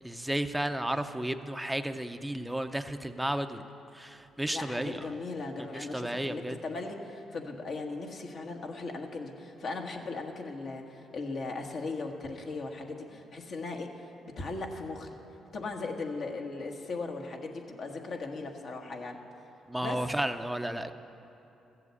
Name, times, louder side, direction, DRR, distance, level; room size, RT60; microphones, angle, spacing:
voice 1, 0.0-3.7 3.9-5.2 5.6-6.6 19.7-20.9, right 1 dB, 5° right, 7 dB, 0.6 m, -33 dB
voice 2, 4.5-14.0 14.4-15.1 15.5-19.2 19.8-20.0, left 3 dB, 55° left, 2 dB, 1.5 m, -38 dB
14.5 x 7.5 x 8.3 m, 3.0 s
cardioid pair, 90°, 0 cm